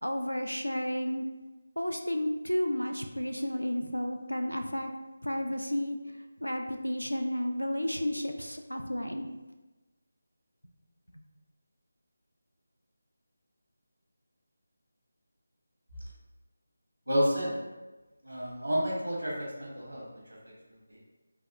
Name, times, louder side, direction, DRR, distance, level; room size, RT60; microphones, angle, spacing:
voice 1, 0.0-1.3 1.8-4.9 5.2-6.0 6.4-9.3 11.1-11.2, equal, 90° left, 5 dB, 0.3 m, -32 dB
voice 2, 17.1-17.6 18.2-20.1 20.9-21.0, equal, 80° right, -3 dB, 0.9 m, -30 dB
3.4 x 2.3 x 2.5 m, 1.1 s
figure-of-eight pair, 160°, 0 cm